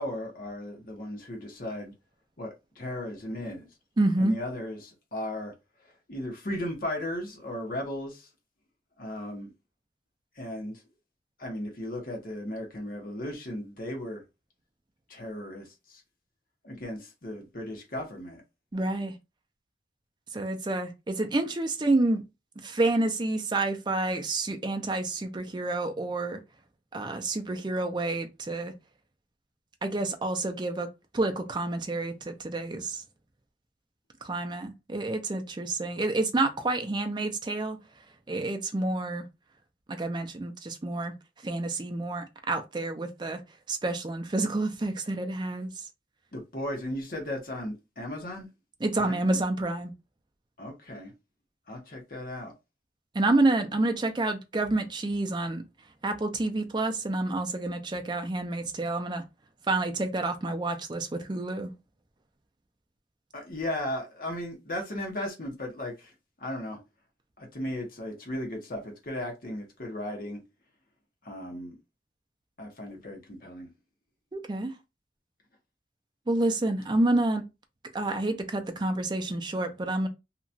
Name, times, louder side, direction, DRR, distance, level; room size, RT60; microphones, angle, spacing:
voice 1, 0.0-1.9 2.4-3.7 4.2-5.5 5.8-8.3 9.0-9.5 10.4-10.8 11.4-14.2 15.1-16.0 16.6-18.4 46.3-48.5 49.0-49.2 50.6-51.1 51.7-52.5 63.3-66.1 66.4-66.8 67.4-70.4 71.2-71.8 72.6-73.7, left 1 dB, 50° left, 1.0 m, -36 dB
voice 2, 4.0-4.4 18.7-19.1 20.3-22.2 22.6-26.4 26.9-28.7 29.8-30.9 31.1-33.0 34.2-37.8 38.3-39.3 39.9-41.1 41.4-43.4 43.7-45.7 48.8-49.9 53.1-55.6 56.0-59.2 59.7-61.7 74.3-74.7 76.3-77.4 77.9-80.1, right 2 dB, 25° right, 0.4 m, -28 dB
2.9 x 2.3 x 2.6 m
head